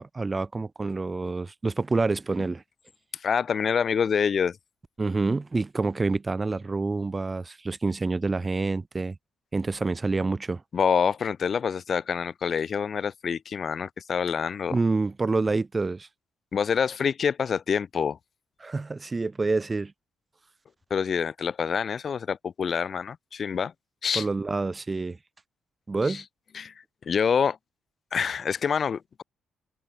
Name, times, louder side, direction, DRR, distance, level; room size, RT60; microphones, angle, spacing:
voice 1, 0.0-2.6 5.0-9.2 9.5-10.6 14.7-16.1 18.6-19.9 24.1-25.2 25.9-26.2, right 3 dB, 25° right, 1.5 m, -27 dB
voice 2, 3.2-4.6 10.7-14.7 16.5-18.2 20.9-23.7 24.0-24.2 26.0-26.2 26.5-26.7 27.1-27.6 28.1-29.2, left 6 dB, 50° left, 1.3 m, -26 dB
cardioid pair, 90°, 0 cm